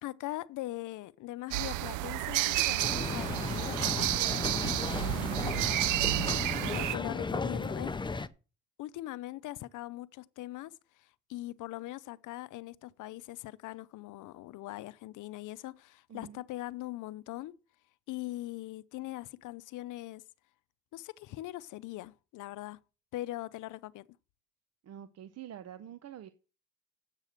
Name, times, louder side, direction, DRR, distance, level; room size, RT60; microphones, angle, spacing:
voice 1, 0.0-4.2 6.7-8.0 8.8-17.6 18.1-20.2 20.9-22.8 23.1-24.1, left 16 dB, 80° left, 0.6 m, -41 dB
sound 1, 1.5-7.0, right 17 dB, 85° right, 0.5 m, -31 dB
sound 2, 2.8-8.3, left 3 dB, 15° left, 0.6 m, -35 dB
voice 2, 5.0-5.9 16.1-16.4 24.8-26.3, right 9 dB, 55° right, 0.8 m, -47 dB
8.3 x 6.6 x 7.6 m
cardioid pair, 90°, 30 cm